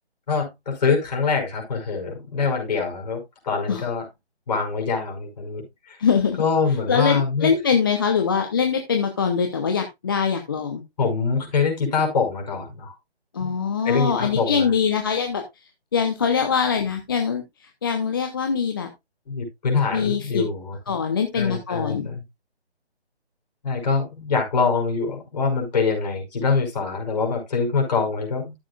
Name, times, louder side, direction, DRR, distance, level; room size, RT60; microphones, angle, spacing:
voice 1, 0.3-4.0 4.5-6.0 6.4-7.5 11.0-12.9 13.4-13.5 13.8-14.7 19.3-20.8 21.3-22.1 23.6-28.5, left 5 dB, 40° left, 2 dB, 5.5 m, -24 dB
voice 2, 6.0-6.4 6.9-10.8 13.3-15.4 15.9-18.9 19.9-20.4 20.9-22.1, left 6 dB, 20° left, 5 dB, 0.8 m, -23 dB
14.5 x 7.4 x 2.4 m, 0.21 s
figure-of-eight pair, 150°, 33 cm